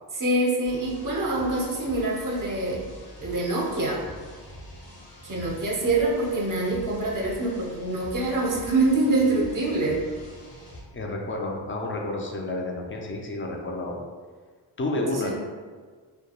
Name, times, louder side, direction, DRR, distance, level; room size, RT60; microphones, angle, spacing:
voice 1, 0.2-2.8 3.2-4.0 5.2-10.0 15.1-15.3, right 2 dB, 50° right, -3 dB, 0.6 m, -25 dB
sound 1, 0.6-10.8, equal, 60° left, 0.9 m, -44 dB
voice 2, 10.9-14.0 14.8-15.3, left 2 dB, 30° left, 0 dB, 0.4 m, -30 dB
2.3 x 2.2 x 2.8 m, 1.5 s
cardioid pair, 65°, 42 cm